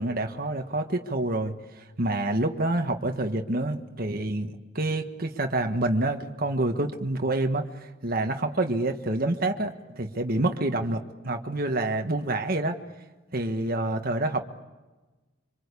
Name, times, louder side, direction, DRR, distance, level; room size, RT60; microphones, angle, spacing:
voice 1, 0.0-12.8 13.3-14.4, right 2 dB, 50° right, 5 dB, 1.6 m, -27 dB
26.0 x 25.5 x 8.4 m, 1.2 s
head